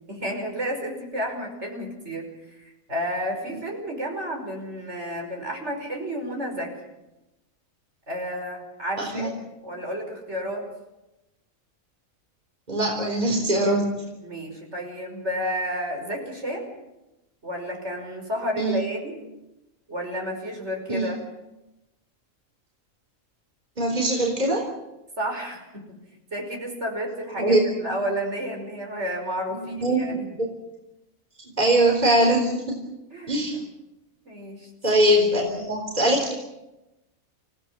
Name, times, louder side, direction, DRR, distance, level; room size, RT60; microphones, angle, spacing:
voice 1, 0.1-6.7 8.1-9.3 9.6-10.6 14.2-16.7 17.4-19.2 19.9-21.2 25.2-25.7 26.3-30.3 33.1-33.6 34.3-34.7, equal, 55° right, 2 dB, 5.9 m, -31 dB
voice 2, 9.0-9.3 12.7-13.9 18.6-18.8 20.9-21.1 23.8-24.7 27.4-27.6 29.6-30.5 31.6-32.8 33.3-33.6 34.8-36.3, right 1 dB, 30° right, 1 dB, 3.9 m, -22 dB
28.5 x 17.0 x 7.6 m, 0.96 s
omnidirectional pair, 1.4 m